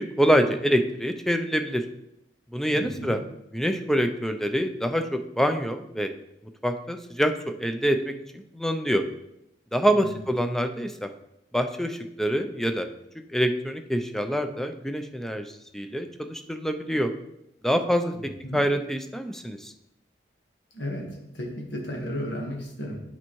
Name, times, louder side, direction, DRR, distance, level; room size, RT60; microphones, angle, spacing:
voice 1, 0.0-1.8 2.5-3.2 3.5-6.1 6.6-9.0 9.7-11.1 11.5-12.9 13.3-17.1 17.6-19.7, equal, ahead, 7 dB, 0.4 m, -26 dB
voice 2, 2.7-3.2 9.9-10.1 18.1-18.6 20.7-23.0, equal, 80° left, 0 dB, 1.5 m, -34 dB
8.6 x 4.5 x 3.1 m, 0.81 s
head